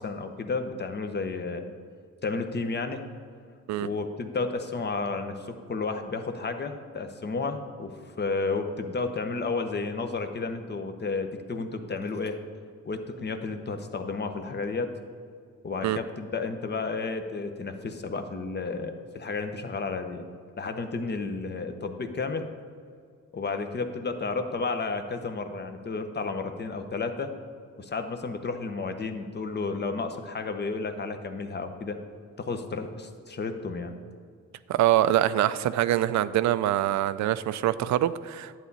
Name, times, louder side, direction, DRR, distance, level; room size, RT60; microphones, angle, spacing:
voice 1, 0.0-1.7 2.2-3.0 3.8-12.4 12.8-14.9 15.6-20.2 20.6-22.5 23.3-27.3 27.8-32.0 32.4-34.0, left 4 dB, 35° left, 7 dB, 1.0 m, -32 dB
voice 2, 34.7-38.6, right 13 dB, 70° right, 15 dB, 0.5 m, -24 dB
11.0 x 8.8 x 4.1 m, 2.1 s
cardioid pair, 90°, 30 cm